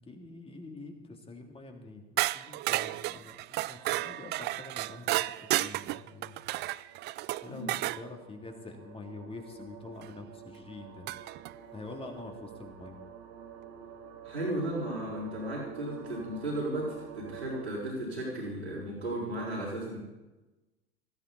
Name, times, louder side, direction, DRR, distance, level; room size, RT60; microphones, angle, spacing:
voice 1, 0.1-6.3 7.4-11.3 11.7-13.0, left 3 dB, 15° left, 3 dB, 3.0 m, -46 dB
sound 1, 2.2-8.0 10.0-10.1 11.1-11.5, right 17 dB, 35° right, 0.4 m, -32 dB
sound 2, 4.2-17.7, right 8 dB, 60° right, 2.9 m, -49 dB
voice 2, 14.2-20.0, right 1 dB, 90° right, -9 dB, 5.5 m, -35 dB
19.5 x 15.0 x 4.3 m, 1.1 s
figure-of-eight pair, 80°, 31 cm